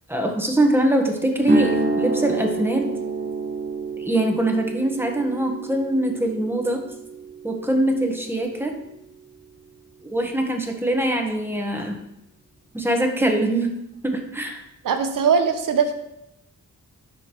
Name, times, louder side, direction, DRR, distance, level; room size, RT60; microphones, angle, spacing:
voice 1, 0.1-2.9 4.0-6.8 7.4-8.7 10.1-12.0 12.7-13.7 14.0-14.6, right 1 dB, 5° right, 2 dB, 1.1 m, -22 dB
sound 1, 1.4-9.4, right 3 dB, 30° right, 1.2 m, -29 dB
voice 2, 14.8-15.9, right 6 dB, 75° right, 6 dB, 0.8 m, -20 dB
9.9 x 5.2 x 3.0 m, 0.85 s
wide cardioid pair, 95°, 33 cm